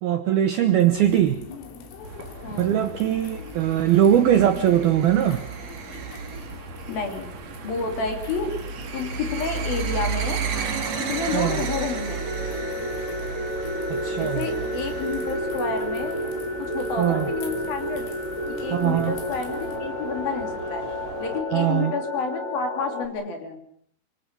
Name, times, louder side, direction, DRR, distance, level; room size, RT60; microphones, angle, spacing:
voice 1, 0.0-1.4 2.6-5.5 11.3-11.6 13.9-14.5 17.0-17.3 18.7-19.1 21.5-21.9, right 11 dB, 75° right, 7 dB, 2.3 m, -21 dB
sound 1, 0.8-19.8, left 5 dB, 80° left, 5.6 m, -43 dB
sound 2, 2.0-21.4, right 6 dB, 50° right, 2.1 m, -34 dB
voice 2, 2.4-2.8 6.9-7.3 7.6-8.5 8.9-10.4 11.1-12.2 14.1-16.3 16.6-18.1 18.5-20.9 21.2-23.6, left 4 dB, 50° left, 5 dB, 4.3 m, -30 dB
sound 3, 10.5-23.1, equal, 25° left, 0.9 m, -31 dB
25.5 x 25.0 x 6.0 m, 0.63 s
omnidirectional pair, 5.8 m